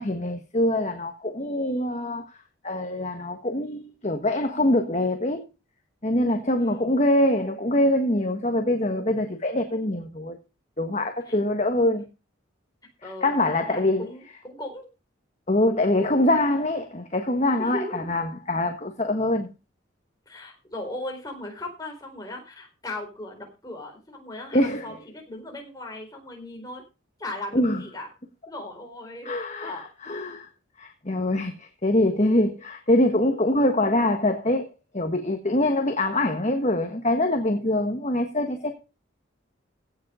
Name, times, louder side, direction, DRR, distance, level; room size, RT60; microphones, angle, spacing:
voice 1, 0.0-2.2 2.6-5.5 6.0-10.4 10.8-12.0 13.0-14.1 15.5-19.5 24.5-24.9 27.5-27.8 29.2-30.5 30.8-38.7, left 1 dB, 35° left, 1.4 m, -24 dB
voice 2, 13.0-14.9 17.6-18.1 20.3-26.8 27.2-28.1 28.5-29.3 29.6-29.8, left 1 dB, 20° left, 4.4 m, -37 dB
16.5 x 7.3 x 5.0 m
head